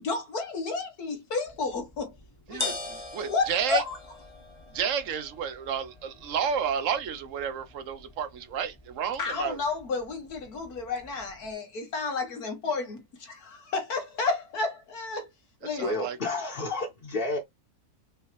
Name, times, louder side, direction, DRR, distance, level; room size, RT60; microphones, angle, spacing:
voice 1, 0.0-2.2 2.5-2.7 3.2-4.0 9.2-15.3 15.6-15.9, left 4 dB, 80° left, 2.1 m, -31 dB
sound 1, 1.5-11.5, left 3 dB, 25° left, 0.9 m, -43 dB
voice 2, 2.5-3.8 4.7-9.6 15.8-16.2, right 7 dB, 60° right, 1.0 m, -31 dB
voice 3, 15.8-17.4, left 2 dB, 40° left, 1.2 m, -30 dB
5.6 x 2.8 x 3.0 m
omnidirectional pair, 1.6 m